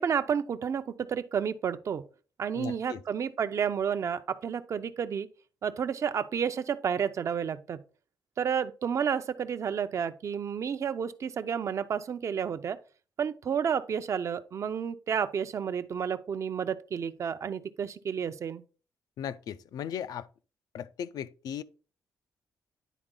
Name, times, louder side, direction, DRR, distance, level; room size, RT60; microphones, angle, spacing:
voice 1, 0.0-2.0 2.4-5.3 5.6-7.8 8.4-12.8 13.2-18.6, right 7 dB, 50° right, 0.6 m, -31 dB
voice 2, 2.5-3.0 19.2-20.3 20.7-21.6, left 9 dB, 75° left, 0.4 m, -37 dB
10.0 x 3.9 x 3.7 m
cardioid pair, 115°, 7 cm